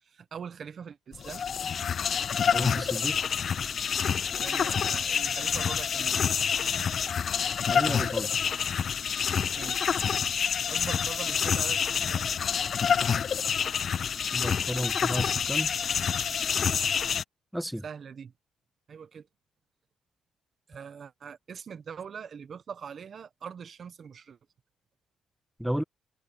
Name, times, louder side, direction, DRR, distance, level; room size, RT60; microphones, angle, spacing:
voice 1, 0.0-1.4 4.4-6.2 9.6-9.9 10.7-12.3 16.3-16.4 17.8-18.3 18.9-19.3 20.7-24.4, right 7 dB, 50° right, 1.1 m, -42 dB
sound 1, 1.1-17.2, left 7 dB, 50° left, 0.4 m, -27 dB
voice 2, 2.5-3.2 7.7-8.3 14.3-15.7 17.5-17.8 25.6-25.8, equal, 5° right, 1.0 m, -32 dB
cardioid pair, 90°, 0 cm